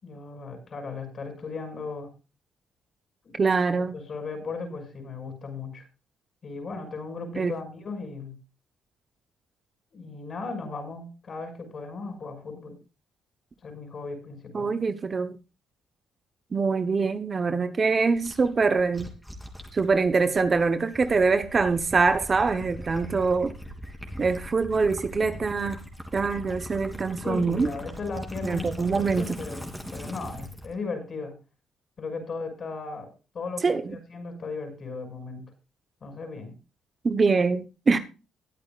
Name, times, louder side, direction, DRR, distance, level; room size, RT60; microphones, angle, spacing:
voice 1, 0.0-2.1 3.2-3.4 3.9-5.8 6.4-8.4 9.9-12.8 13.6-14.7 27.2-31.3 32.0-35.4 36.0-36.6, left 4 dB, 45° left, 6.3 m, -36 dB
voice 2, 3.4-3.9 7.4-7.6 14.5-15.4 16.5-19.1 19.7-23.6 24.2-25.8 26.1-27.7 28.4-29.4 33.6-34.0 37.0-38.0, right 4 dB, 35° right, 1.0 m, -24 dB
Gurgling / Liquid, 18.2-30.7, equal, ahead, 3.1 m, -40 dB
21.0 x 8.6 x 2.5 m
cardioid pair, 90°, 0 cm